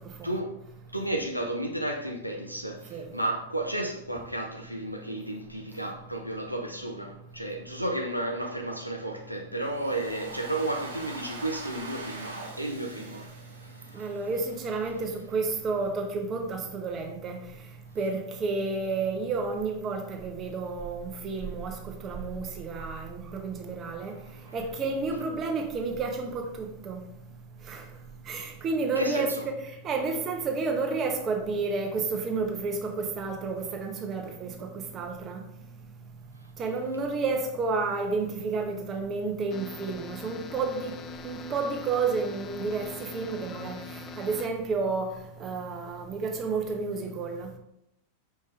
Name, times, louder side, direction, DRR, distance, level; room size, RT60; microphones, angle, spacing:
voice 1, 0.9-14.2 14.9-15.0 24.2-24.6 29.0-29.5, right 1 dB, 90° right, 0.7 m, -33 dB
Domestic sounds home sounds, 9.6-14.6, right 2 dB, 70° right, 1.2 m, -43 dB
voice 2, 13.9-17.4 18.0-24.1 24.5-27.0 27.7-27.8 28.3-35.4 36.6-41.0 41.2-43.8 44.2-47.5, right 4 dB, 30° right, 1.1 m, -31 dB
sound 1, 39.5-44.5, left 4 dB, 30° left, 0.5 m, -42 dB
5.4 x 5.3 x 3.7 m
figure-of-eight pair, 90°, 0 cm